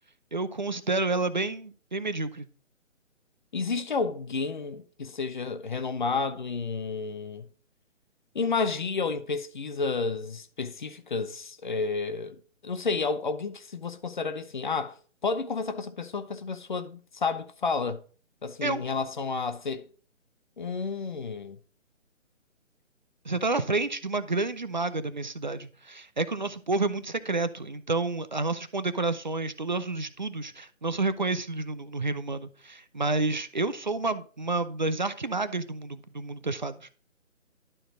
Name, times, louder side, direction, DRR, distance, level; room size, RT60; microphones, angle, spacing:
voice 1, 0.3-2.5 18.6-18.8 23.3-36.9, right 3 dB, 40° right, 0.4 m, -30 dB
voice 2, 3.5-7.5 8.3-12.4 12.6-15.0 15.2-18.0 18.4-19.9 20.6-21.6, left 4 dB, 40° left, 0.7 m, -31 dB
11.5 x 4.4 x 3.8 m
figure-of-eight pair, 145°, 39 cm